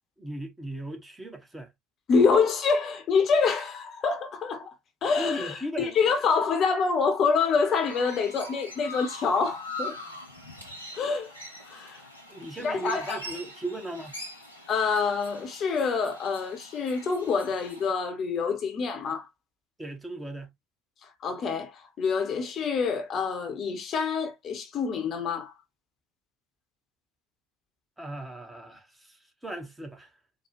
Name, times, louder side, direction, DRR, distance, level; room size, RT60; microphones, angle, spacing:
voice 1, 0.2-1.7 5.2-6.0 12.3-14.1 19.8-20.5 28.0-30.1, right 1 dB, 10° right, 1.1 m, -37 dB
voice 2, 2.1-4.7 5.0-10.0 10.9-11.3 11.6-12.0 12.6-13.2 14.7-19.3 21.0-25.5, left 5 dB, 40° left, 0.9 m, -26 dB
Chirp tweet, 7.3-17.9, left 1 dB, 90° left, 1.1 m, -43 dB
4.6 x 2.3 x 2.9 m
figure-of-eight pair, 65°, 0 cm